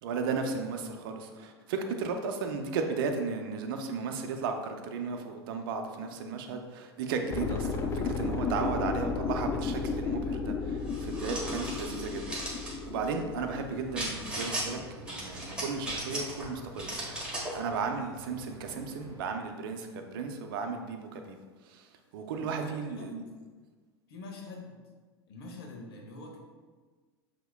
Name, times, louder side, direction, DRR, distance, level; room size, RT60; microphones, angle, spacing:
voice 1, 0.0-12.4 12.9-17.0 17.5-21.4 21.7-21.9 22.1-23.2, right 5 dB, 55° right, 5 dB, 0.6 m, -35 dB
sound 1, 7.3-15.1 15.4-15.5, left 4 dB, 20° left, 0.3 m, -34 dB
sound 2, 10.9-12.8 13.9-14.7 15.1-16.4 16.8-17.6, right 1 dB, 5° right, 1.3 m, -37 dB
sound 3, 13.3-19.2, equal, 30° right, 1.3 m, -49 dB
voice 2, 22.3-23.2 24.1-24.7 25.3-26.4, left 2 dB, 60° left, 0 dB, 1.0 m, -45 dB
7.6 x 2.9 x 2.2 m, 1.4 s
figure-of-eight pair, 85°, 14 cm